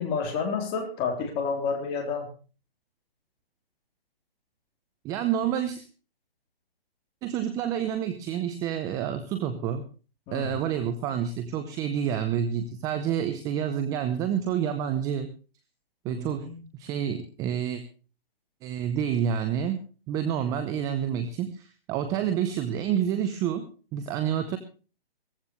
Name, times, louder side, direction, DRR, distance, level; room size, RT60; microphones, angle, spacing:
voice 1, 0.0-2.3 10.3-10.6 16.1-16.6, left 5 dB, 20° left, 3 dB, 3.5 m, -30 dB
voice 2, 5.0-5.9 7.2-9.8 10.3-15.3 16.0-17.8 18.6-24.6, right 9 dB, 10° right, 9 dB, 0.7 m, -28 dB
18.0 x 15.0 x 3.1 m, 0.35 s
hypercardioid pair, 150°, 30 cm